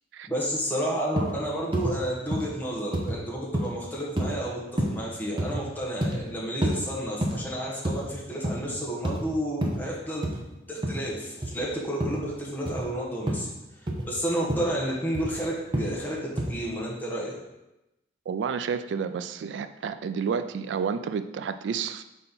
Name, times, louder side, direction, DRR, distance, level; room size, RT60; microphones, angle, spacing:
voice 1, 0.3-10.3 10.7-13.5 13.8-17.3, equal, 10° left, -4 dB, 1.3 m, -31 dB
sound 1, 1.2-1.4 1.7-2.0 2.3-2.5 2.9-3.2 3.5-3.7 4.2-4.4 4.8-5.0 5.4-5.6 6.0-6.2 6.6-6.8 7.2-7.4 7.8-8.1 8.3-8.6 9.0-9.3 9.6-9.8 10.2-10.4 10.8-11.0 11.4-11.6 12.0-12.2 12.6-12.9 13.3-13.5 13.9-14.1 14.5-14.7 15.1-15.3 15.7-16.0 16.4-16.5, right 1 dB, 30° right, 0.8 m, -28 dB
voice 2, 18.3-22.0, right 6 dB, 90° right, 11 dB, 0.3 m, -30 dB
4.4 x 4.2 x 5.3 m, 0.95 s
head